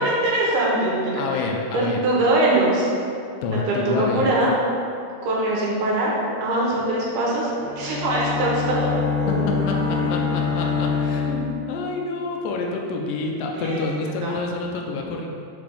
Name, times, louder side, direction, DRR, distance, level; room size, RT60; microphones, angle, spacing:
voice 1, 0.0-1.4 1.7-2.9 3.7-4.5 5.2-6.1 6.4-8.9 9.2-10.2 13.6-13.8 14.2-14.3, right 2 dB, 75° right, -5 dB, 2.5 m, -22 dB
voice 2, 1.2-2.0 3.4-4.4 9.3-15.3, left 3 dB, 90° left, 0 dB, 2.3 m, -28 dB
Bowed string instrument, 7.4-12.1, left 5 dB, 70° left, 2.6 m, -25 dB
5.8 x 3.3 x 5.3 m, 2.5 s
omnidirectional pair, 3.8 m